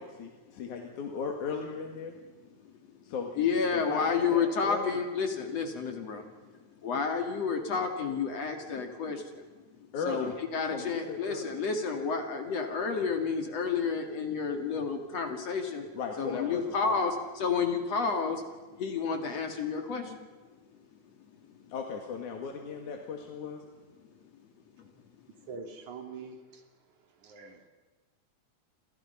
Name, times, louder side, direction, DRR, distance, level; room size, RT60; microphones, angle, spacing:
voice 1, 0.0-2.1 3.1-3.5 3.7-4.9 9.9-10.3 10.7-11.5 15.9-17.0 21.7-23.6, left 5 dB, 85° left, 2 dB, 3.5 m, -37 dB
voice 2, 3.4-6.5 6.8-9.4 10.0-15.9 16.2-18.4 18.7-20.3 21.6-21.7 24.8-24.9, left 5 dB, 60° left, 5 dB, 3.3 m, -30 dB
voice 3, 25.5-26.6 27.2-27.6, right 5 dB, 75° right, 5 dB, 3.9 m, -44 dB
29.5 x 27.0 x 5.7 m, 1.3 s
omnidirectional pair, 3.4 m